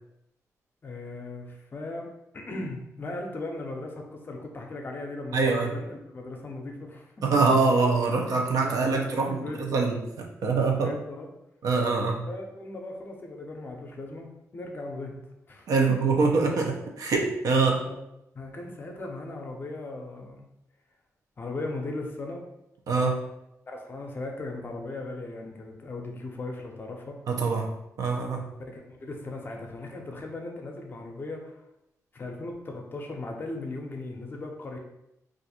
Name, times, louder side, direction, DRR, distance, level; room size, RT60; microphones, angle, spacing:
voice 1, 0.8-2.1 2.3-7.4 8.4-9.6 10.6-11.3 12.3-15.2 15.5-16.0 17.8-18.0 18.3-20.4 21.4-22.4 23.7-27.2 28.6-31.5 32.1-34.8, left 2 dB, 35° left, 1 dB, 0.5 m, -38 dB
voice 2, 5.3-5.7 7.2-10.0 10.4-10.9 11.6-12.2 15.7-17.8 22.9-23.2 27.3-27.7 28.0-28.5, right 4 dB, 85° right, 1 dB, 0.6 m, -24 dB
2.5 x 2.5 x 4.2 m, 0.87 s
wide cardioid pair, 150°, 6 cm